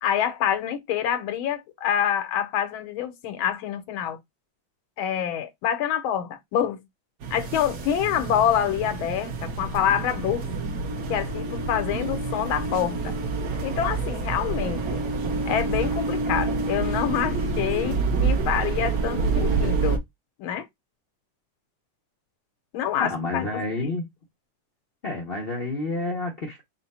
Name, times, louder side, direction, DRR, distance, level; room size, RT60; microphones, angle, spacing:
voice 1, 0.0-4.2 5.0-6.8 7.3-10.5 11.1-13.1 13.6-15.0 15.5-20.0 20.4-20.7 22.7-23.9, left 10 dB, 85° left, 1.5 m, -26 dB
sound 1, 7.2-20.0, right 4 dB, 60° right, 1.2 m, -27 dB
voice 2, 23.0-24.1 25.0-26.6, left 2 dB, 70° left, 0.5 m, -29 dB
4.3 x 2.1 x 4.0 m
omnidirectional pair, 2.2 m